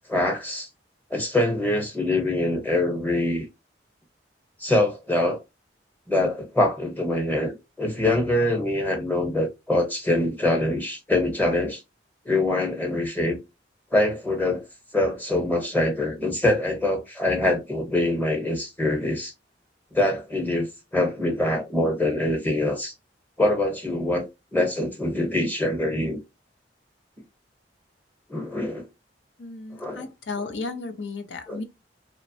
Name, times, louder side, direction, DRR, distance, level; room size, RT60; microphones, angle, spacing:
voice 1, 0.1-0.7 1.1-3.4 4.6-5.4 6.1-11.8 12.2-13.4 13.9-14.6 14.9-19.3 19.9-20.7 20.9-22.9 23.4-26.2 28.3-28.9 29.8-30.1 31.5-31.6, left 1 dB, 10° left, 0.9 m, -24 dB
voice 2, 29.4-31.6, left 3 dB, 75° left, 0.6 m, -34 dB
3.0 x 2.1 x 2.6 m
head